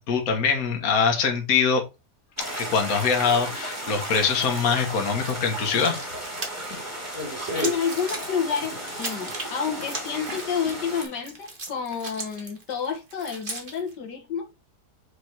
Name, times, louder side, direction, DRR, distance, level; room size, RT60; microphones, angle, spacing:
voice 1, 0.1-1.8 2.4-6.0, left 6 dB, 60° left, 1.7 m, -23 dB
sound 1, 2.4-11.0, right 1 dB, 10° right, 2.3 m, -34 dB
sound 2, 4.1-4.8 5.1-13.9, right 3 dB, 30° right, 1.8 m, -38 dB
voice 2, 7.5-14.5, left 7 dB, 85° left, 2.0 m, -29 dB
6.6 x 4.0 x 4.5 m
omnidirectional pair, 1.8 m